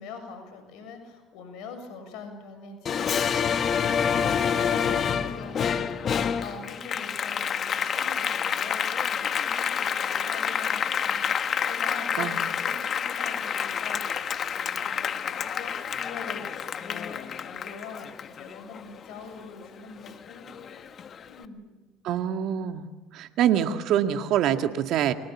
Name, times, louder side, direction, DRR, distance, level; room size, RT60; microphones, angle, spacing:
voice 1, 0.0-5.8 6.4-20.7 21.3-21.7, left 4 dB, 65° left, 7 dB, 7.4 m, -43 dB
Applause, 2.9-19.7 20.1-21.2, left 7 dB, 45° left, 1.5 m, -28 dB
voice 2, 22.0-22.8 23.1-25.1, right 10 dB, 60° right, 7 dB, 2.0 m, -25 dB
29.5 x 23.5 x 7.4 m, 1.2 s
hypercardioid pair, 70°, 0 cm